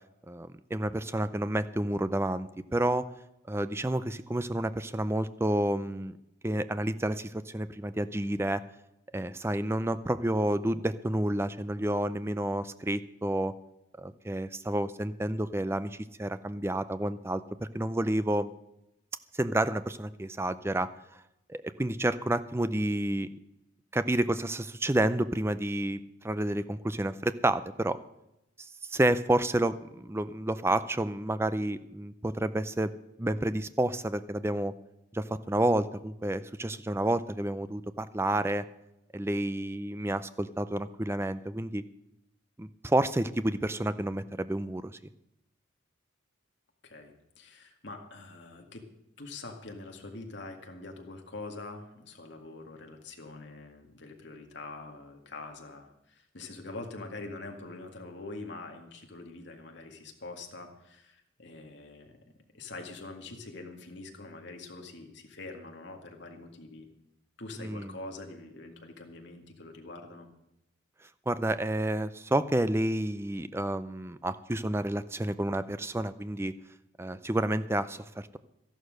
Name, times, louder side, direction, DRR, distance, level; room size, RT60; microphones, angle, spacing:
voice 1, 0.3-3.1 3.5-6.1 6.4-8.6 9.1-13.5 14.0-17.4 17.7-18.5 19.3-21.2 21.5-23.3 23.9-28.0 28.6-32.9 33.2-34.7 35.1-38.7 39.1-41.8 42.6-45.1 67.6-67.9 71.3-76.5 77.0-78.4, right 1 dB, 10° right, 13 dB, 0.5 m, -30 dB
voice 2, 46.8-48.8 49.2-62.2 62.5-66.9 67.4-70.3, left 2 dB, 55° left, 3 dB, 2.0 m, -44 dB
13.0 x 11.5 x 6.5 m, 0.87 s
head